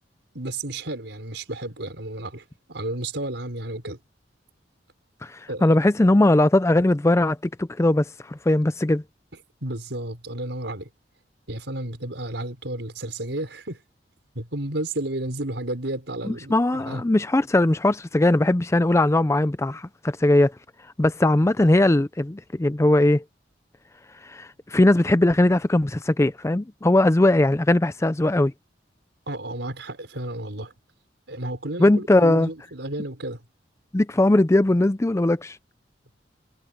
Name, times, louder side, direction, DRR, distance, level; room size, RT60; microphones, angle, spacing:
voice 1, 0.3-4.0 5.5-5.7 9.6-10.9 11.5-13.8 14.3-17.0 29.3-30.7 31.3-33.4, right 1 dB, 85° right, 4.6 m, -32 dB
voice 2, 5.2-9.0 16.2-20.5 21.0-23.2 24.2-28.5 31.8-32.5 33.9-35.6, left 1 dB, 15° left, 0.5 m, -20 dB
head